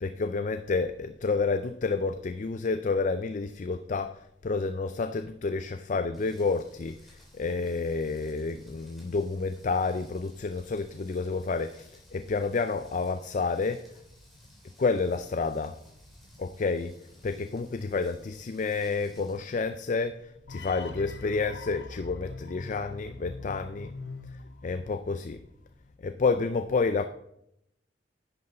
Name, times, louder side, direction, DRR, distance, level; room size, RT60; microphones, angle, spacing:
voice 1, 0.0-13.8 14.8-15.8 16.4-16.9 17.2-23.9 24.3-25.4 26.0-27.0, left 4 dB, 45° left, 9 dB, 0.4 m, -30 dB
Rain, 6.1-19.4, equal, ahead, 3.2 m, -57 dB
sound 1, 20.5-25.6, left 3 dB, 75° left, 0.8 m, -43 dB
11.0 x 7.9 x 3.9 m, 0.78 s
head